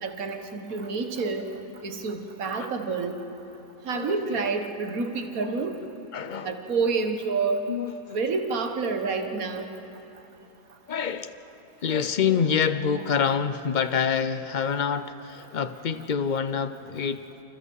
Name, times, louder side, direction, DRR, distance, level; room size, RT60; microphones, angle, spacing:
voice 1, 0.0-1.5 1.8-3.2 3.9-5.8 6.4-7.7 8.1-9.7, right 4 dB, 65° right, 6 dB, 1.8 m, -28 dB
voice 2, 3.9-4.5 5.4-5.6 6.1-6.6 7.7-8.2 10.9-11.3 11.8-17.2, left 7 dB, 70° left, 12 dB, 0.4 m, -27 dB
29.0 x 27.5 x 4.7 m, 3.0 s
omnidirectional pair, 1.6 m